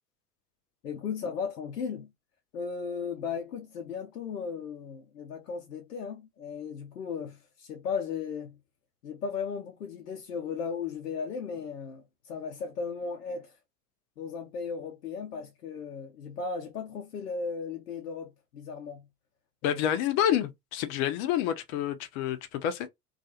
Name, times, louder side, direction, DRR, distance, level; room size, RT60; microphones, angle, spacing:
voice 1, 0.8-2.1 2.5-8.6 9.0-13.6 14.2-19.1 19.6-19.8, left 5 dB, 80° left, 0.7 m, -36 dB
voice 2, 19.6-22.9, left 10 dB, 40° left, 0.6 m, -28 dB
2.4 x 2.4 x 2.7 m
figure-of-eight pair, 75°, 47 cm